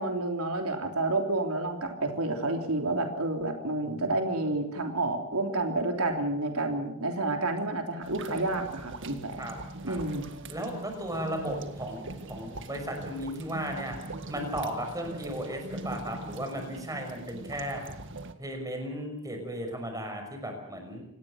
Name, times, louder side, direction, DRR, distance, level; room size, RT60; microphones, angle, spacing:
voice 1, 0.0-9.4 9.8-10.2, right 2 dB, 90° right, 4 dB, 3.4 m, -30 dB
sound 1, 8.0-18.3, right 2 dB, 60° right, 1.9 m, -41 dB
voice 2, 10.5-14.0 14.3-17.8 18.4-21.0, equal, 15° right, 4 dB, 6.0 m, -35 dB
26.5 x 19.0 x 6.5 m, 0.76 s
head